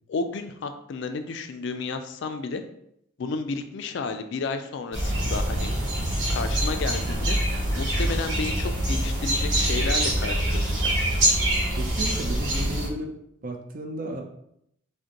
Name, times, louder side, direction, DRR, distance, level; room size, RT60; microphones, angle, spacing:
voice 1, 0.1-2.6 3.2-5.7 6.3-7.4 7.7-10.9, left 4 dB, 60° left, 8 dB, 0.4 m, -32 dB
sound 1, 4.9-12.9, right 1 dB, 65° right, 1.1 m, -25 dB
voice 2, 11.8-13.1 13.4-14.2, right 1 dB, 45° right, 3 dB, 0.5 m, -33 dB
5.0 x 2.1 x 2.9 m, 0.74 s
head